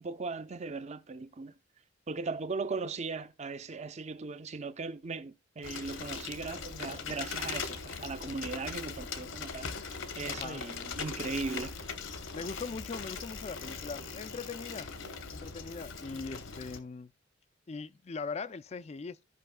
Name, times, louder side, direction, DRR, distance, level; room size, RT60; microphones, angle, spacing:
voice 1, 0.0-1.5 2.1-11.8, right 4 dB, 35° right, 0.6 m, -38 dB
Bicycle, 5.6-16.8, left 5 dB, 70° left, 1.0 m, -40 dB
sound 1, 9.6-15.5, right 3 dB, 80° right, 1.1 m, -57 dB
voice 2, 10.3-10.7 12.3-14.9 15.3-17.1 17.7-19.2, left 4 dB, 30° left, 0.4 m, -40 dB
15.5 x 5.5 x 2.2 m
head